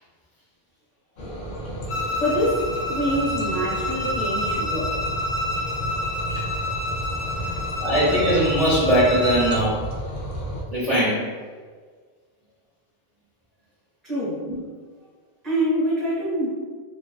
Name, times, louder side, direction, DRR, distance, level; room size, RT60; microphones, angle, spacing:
sound 1, 1.2-10.6, right 1 dB, 60° left, 0.6 m, -32 dB
Bowed string instrument, 1.9-9.7, left 1 dB, 80° left, 0.9 m, -29 dB
voice 1, 2.2-2.6 2.9-5.0 7.3-7.6 14.0-14.4 15.4-16.5, equal, ahead, -10 dB, 1.0 m, -25 dB
voice 2, 7.8-9.8 10.7-11.3 14.5-14.6, equal, 45° right, -10 dB, 0.7 m, -20 dB
2.4 x 2.4 x 2.3 m, 1.5 s
omnidirectional pair, 1.1 m